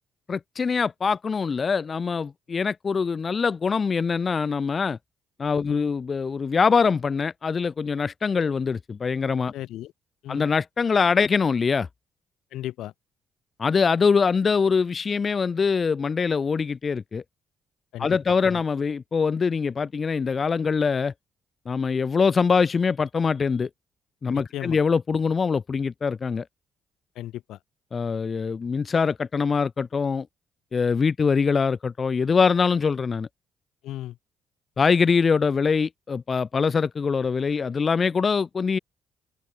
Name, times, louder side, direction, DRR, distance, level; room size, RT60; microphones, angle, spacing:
voice 1, 0.3-5.0 5.4-9.5 10.3-11.9 13.6-17.2 18.0-21.1 21.6-23.7 24.2-26.4 27.9-30.3 30.7-33.3 34.8-38.8, left 5 dB, 40° left, 1.6 m, -23 dB
voice 2, 9.5-9.9 10.2-10.5 12.5-12.9 17.9-18.2 18.5-18.6 24.3-24.8 27.2-27.6 33.8-34.2, left 14 dB, 85° left, 4.1 m, -35 dB
open air
cardioid pair, 90°, 0 cm